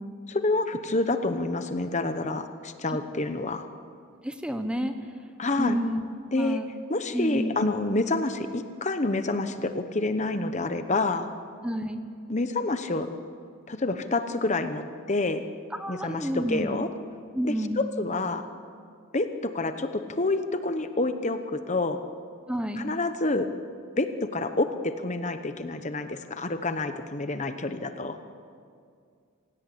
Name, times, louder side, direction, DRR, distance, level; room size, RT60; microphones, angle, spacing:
voice 1, 0.3-3.6 5.4-5.8 6.3-6.6 6.9-11.3 12.3-13.1 13.7-15.5 15.9-16.9 17.4-18.5 19.1-22.0 22.8-23.5 24.0-28.2, left 2 dB, 30° left, 8 dB, 1.0 m, -28 dB
voice 2, 4.2-4.9 5.6-6.0 6.4-6.7 7.1-7.7 11.6-12.0 15.8-16.8 17.3-17.9 22.5-22.9, equal, 5° right, 7 dB, 1.0 m, -29 dB
25.5 x 17.0 x 8.5 m, 2.2 s
head